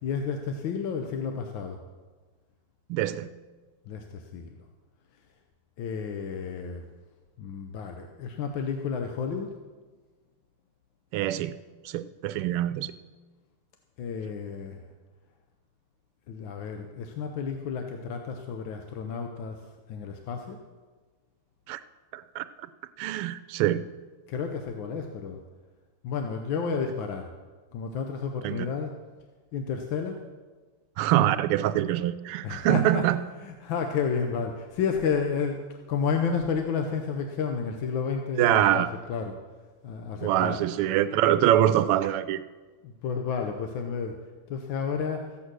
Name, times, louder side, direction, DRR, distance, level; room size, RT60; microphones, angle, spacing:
voice 1, 0.0-1.8 3.9-4.5 5.8-6.8 7.4-9.5 14.0-14.8 16.3-19.6 19.9-20.6 24.3-25.4 26.0-27.3 27.7-29.0 29.5-30.2 32.4-33.1 33.4-35.6 35.9-39.4 39.8-40.6 42.8-44.2 44.5-45.3, left 6 dB, 70° left, 4 dB, 1.5 m, -31 dB
voice 2, 2.9-3.3 11.1-11.5 11.8-12.9 21.7-21.8 22.1-22.4 23.0-23.9 28.4-28.7 31.0-33.2 38.4-38.9 40.2-42.4, right 12 dB, 85° right, 14 dB, 1.5 m, -24 dB
14.5 x 8.5 x 6.2 m, 1.4 s
omnidirectional pair, 2.4 m